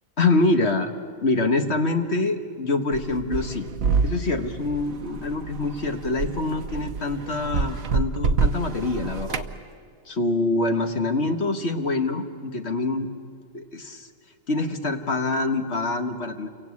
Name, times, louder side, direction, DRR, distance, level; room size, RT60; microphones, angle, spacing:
voice 1, 0.2-0.9 1.2-3.7 4.0-9.5 10.1-13.1 13.5-14.1 14.5-16.5, left 2 dB, 55° left, 6 dB, 1.8 m, -25 dB
sound 1, 2.9-9.5, right 4 dB, 80° right, 1.4 m, -27 dB
28.5 x 24.0 x 8.5 m, 2.1 s
omnidirectional pair, 1.4 m